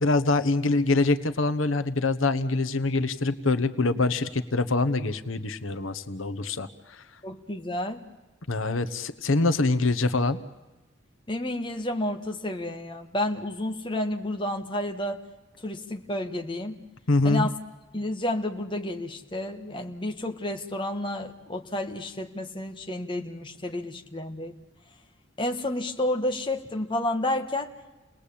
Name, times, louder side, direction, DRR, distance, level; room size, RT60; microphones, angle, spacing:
voice 1, 0.0-6.7 8.5-10.4 17.1-17.5, left 3 dB, 85° left, 11 dB, 1.2 m, -24 dB
voice 2, 7.2-8.0 11.3-15.2 15.6-16.8 17.2-17.6 17.9-24.6 25.4-27.7, left 1 dB, 25° left, 4 dB, 1.6 m, -30 dB
30.0 x 20.0 x 8.6 m, 1.1 s
head